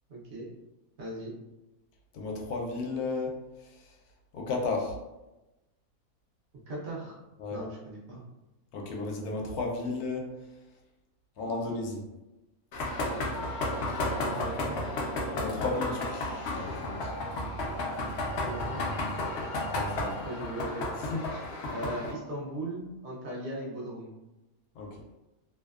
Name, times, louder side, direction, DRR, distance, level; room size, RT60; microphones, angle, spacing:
voice 1, 0.1-0.5 1.0-1.3 6.7-7.2 7.5-8.2 14.0-14.8 18.5-18.8 20.2-21.0 21.3-21.4 21.7-24.1, right 1 dB, 60° right, -4 dB, 0.7 m, -38 dB
voice 2, 2.1-3.3 4.3-4.9 7.4-7.6 8.7-10.3 11.4-12.0 15.3-17.1 19.7-20.2 21.1-21.2 24.8-25.0, left 3 dB, 90° left, 0 dB, 1.1 m, -33 dB
sound 1, 12.7-22.1, left 2 dB, 65° left, 0.6 m, -33 dB
2.6 x 2.1 x 2.3 m, 1.0 s
omnidirectional pair, 1.5 m